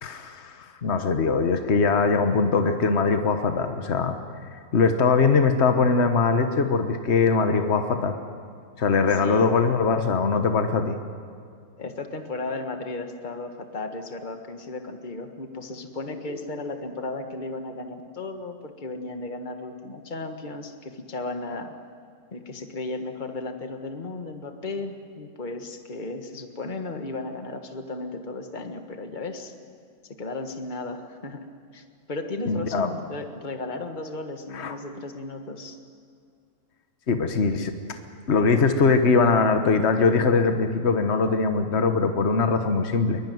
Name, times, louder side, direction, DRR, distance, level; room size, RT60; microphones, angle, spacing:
voice 1, 0.0-4.2 4.7-8.2 8.8-11.0 32.4-32.9 34.5-34.7 37.1-37.7 38.3-43.2, left 4 dB, 55° left, 7 dB, 1.5 m, -21 dB
voice 2, 9.1-9.6 11.8-21.7 22.3-29.5 30.1-31.5 31.7-35.8, left 2 dB, 35° left, 6 dB, 1.7 m, -35 dB
23.0 x 22.5 x 9.4 m, 2.3 s
omnidirectional pair, 1.4 m